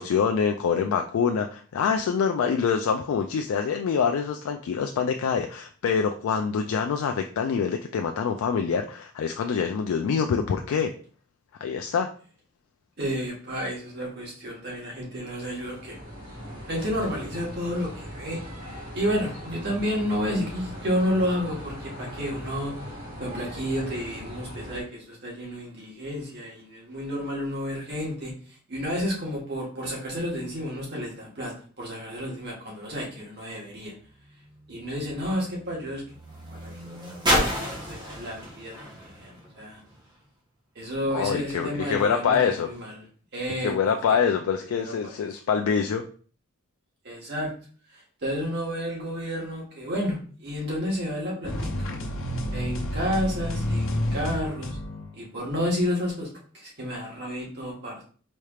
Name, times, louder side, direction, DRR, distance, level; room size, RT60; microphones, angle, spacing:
voice 1, 0.0-10.9 11.6-12.1 41.1-42.7 43.6-46.0, left 6 dB, 85° left, 5 dB, 0.3 m, -25 dB
voice 2, 13.0-16.0 16.7-18.4 18.9-28.3 28.7-31.5 31.8-33.9 34.7-36.0 36.5-39.8 40.7-43.0 43.3-43.9 44.8-45.2 47.0-47.5 47.9-51.7 52.5-54.8 55.1-56.3 56.5-58.0, equal, 50° right, -3 dB, 1.3 m, -31 dB
sound 1, 15.3-24.8, equal, 90° right, 1.8 m, -40 dB
sound 2, 33.7-40.2 41.1-41.2, equal, 20° right, 1.0 m, -32 dB
sound 3, 51.4-55.2, left 1 dB, 65° left, 0.7 m, -30 dB
4.3 x 3.2 x 2.4 m, 0.43 s
head